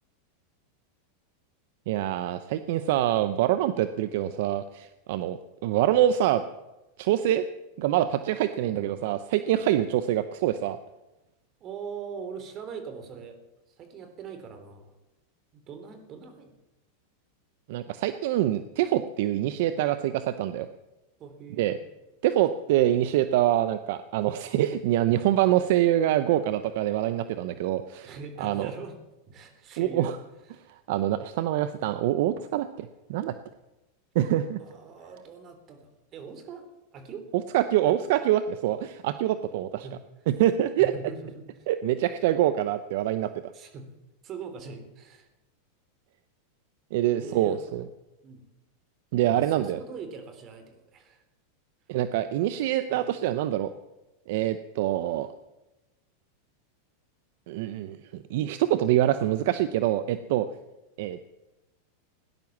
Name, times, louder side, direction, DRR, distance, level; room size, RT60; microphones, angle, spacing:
voice 1, 1.9-6.4 7.0-7.4 7.8-10.8 17.7-20.7 21.6-21.8 22.2-28.1 28.4-28.7 29.8-30.2 30.9-33.3 34.1-34.6 37.5-39.9 40.3-40.9 41.7-43.3 46.9-47.8 49.1-49.8 51.9-53.7 54.3-55.3 57.5-60.5 61.0-61.2, right 12 dB, 65° right, 12 dB, 0.8 m, -25 dB
voice 2, 8.6-9.1 11.6-13.4 13.7-14.9 15.5-16.5 21.2-21.8 27.9-29.0 29.3-30.2 30.5-30.7 34.6-36.7 36.9-37.3 37.9-38.0 39.8-40.3 40.8-41.7 43.5-43.9 44.2-45.3 47.2-47.6 48.2-48.4 49.3-51.2 52.9-53.1 55.0-55.2, right 5 dB, 35° right, 8 dB, 3.5 m, -42 dB
17.5 x 10.5 x 7.3 m, 1.0 s
hypercardioid pair, 120°, 0 cm